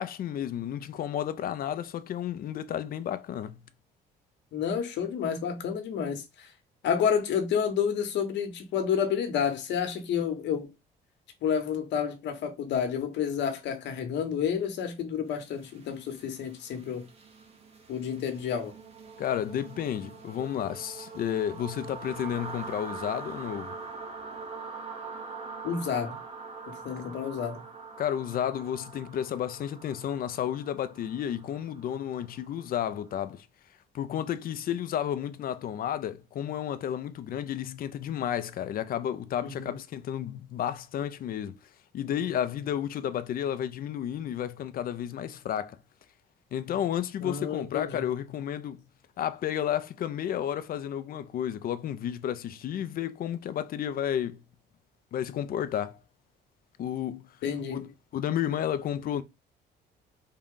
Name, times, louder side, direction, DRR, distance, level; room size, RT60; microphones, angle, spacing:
voice 1, 0.0-3.6 19.2-23.8 28.0-33.5 33.9-41.6 41.9-45.8 46.5-48.8 49.2-54.4 55.1-56.0 56.8-57.3 57.7-59.2, left 10 dB, 55° left, 0.5 m, -32 dB
voice 2, 4.5-6.5 6.8-10.7 11.4-17.1 17.9-18.7 25.6-26.2 26.7-27.6 39.4-39.8 47.2-48.1 57.4-57.9, left 7 dB, 75° left, 1.0 m, -30 dB
sound 1, 15.4-33.2, right 4 dB, 35° right, 1.0 m, -44 dB
3.7 x 2.3 x 3.7 m
cardioid pair, 110°, 18 cm